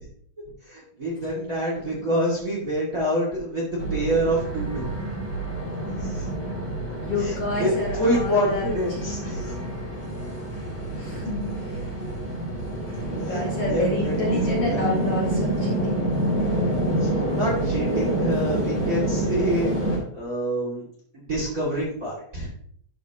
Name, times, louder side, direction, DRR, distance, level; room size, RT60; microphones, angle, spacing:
voice 1, 0.7-4.9 5.8-6.3 7.2-9.6 13.2-14.4 14.7-15.0 17.0-20.8 21.1-22.5, equal, 25° right, -5 dB, 2.2 m, -27 dB
voice 2, 1.8-2.2 7.0-8.6 8.9-9.6 10.9-11.8 12.9-16.1, left 2 dB, 45° left, -4 dB, 2.6 m, -30 dB
sound 1, 3.8-20.0, right 1 dB, 10° left, 3.4 m, -27 dB
12.5 x 5.9 x 3.0 m, 0.63 s
omnidirectional pair, 4.1 m